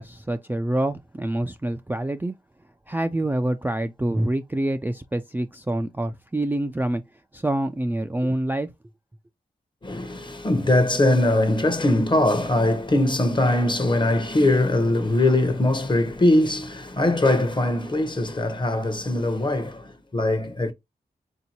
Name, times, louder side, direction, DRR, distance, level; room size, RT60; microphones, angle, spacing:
voice 1, 0.0-2.3 2.9-7.0 7.3-8.7, right 1 dB, 10° right, 0.3 m, -26 dB
voice 2, 9.8-20.7, left 1 dB, 30° left, 0.9 m, -21 dB
3.7 x 2.7 x 2.8 m
cardioid pair, 40°, 17 cm